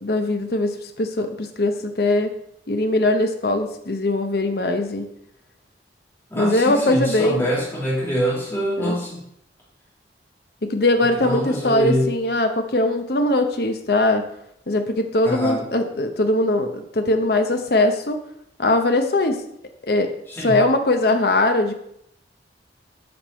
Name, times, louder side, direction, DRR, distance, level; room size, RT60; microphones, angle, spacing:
voice 1, 0.0-2.3 2.7-5.1 6.3-7.5 8.8-9.0 10.6-14.3 14.7-18.2 18.6-19.4 19.8-20.1 20.4-21.7, left 2 dB, 55° left, 6 dB, 0.8 m, -21 dB
voice 2, 6.3-9.2 11.1-12.1 15.2-15.6 20.3-20.6, equal, 10° left, -5 dB, 2.2 m, -24 dB
7.9 x 5.4 x 4.3 m, 0.74 s
head